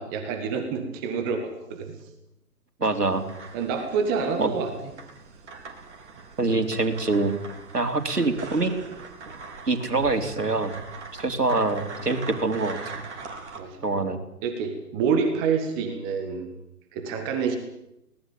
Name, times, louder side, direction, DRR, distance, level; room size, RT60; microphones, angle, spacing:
voice 1, 0.0-2.0 2.8-2.9 3.5-4.7 13.5-13.8 14.4-16.5 16.9-17.6, right 5 dB, 15° right, 6 dB, 1.7 m, -27 dB
voice 2, 2.8-3.3 4.4-4.5 6.4-7.4 7.7-8.7 9.7-10.7 11.1-13.0 13.8-14.2, right 3 dB, 80° right, 6 dB, 3.9 m, -25 dB
sound 1, 3.0-13.6, right 4 dB, 45° right, 4.2 m, -42 dB
23.0 x 18.5 x 8.7 m, 0.83 s
figure-of-eight pair, 145°, 46 cm